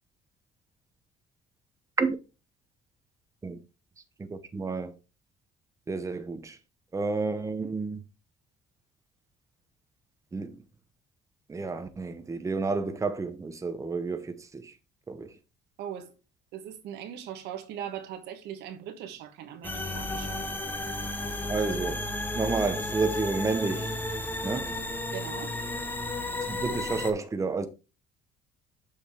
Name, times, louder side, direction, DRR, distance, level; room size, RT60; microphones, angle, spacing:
voice 1, 4.2-4.9 5.9-6.6 6.9-8.0 10.3-10.6 11.5-14.7 15.1-15.3 21.5-22.1 22.3-23.9 24.4-24.7 26.5-27.7, right 4 dB, 20° right, 0.8 m, -30 dB
voice 2, 15.8-16.1 16.5-20.4 25.1-25.6, right 9 dB, 85° right, 1.2 m, -40 dB
sound 1, 19.6-27.1, left 1 dB, 10° left, 1.0 m, -33 dB
7.2 x 5.0 x 3.5 m
cardioid pair, 110°, 17 cm